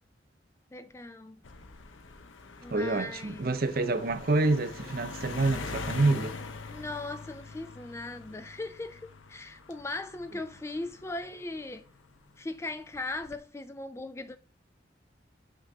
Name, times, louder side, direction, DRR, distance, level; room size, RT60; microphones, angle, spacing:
voice 1, 0.7-1.4 2.6-3.6 6.7-11.9 12.4-14.4, left 2 dB, 15° left, 0.3 m, -39 dB
sound 1, 1.4-12.2 12.9-13.4, left 4 dB, 90° left, 0.8 m, -43 dB
voice 2, 2.7-6.4, right 2 dB, 50° right, 0.6 m, -27 dB
6.0 x 3.9 x 5.3 m
head